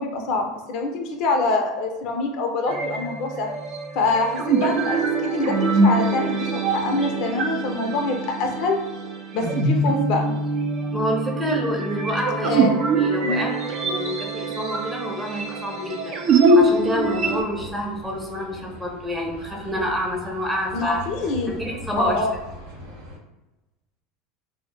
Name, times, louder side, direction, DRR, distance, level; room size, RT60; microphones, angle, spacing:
voice 1, 0.0-3.5 3.9-8.8 9.3-10.3 12.4-12.7 13.2-13.5 20.7-21.5 22.0-22.3, left 3 dB, 60° left, 3 dB, 0.5 m, -25 dB
sound 1, 2.7-17.4, right 2 dB, 50° right, 0.4 m, -23 dB
voice 2, 10.9-12.6 12.9-13.5 13.8-21.0 21.5-22.2, equal, 10° right, -1 dB, 0.6 m, -28 dB
sound 2, 16.5-23.2, equal, 75° right, 0.8 m, -41 dB
2.1 x 2.0 x 3.2 m, 1.0 s
hypercardioid pair, 95°, 0 cm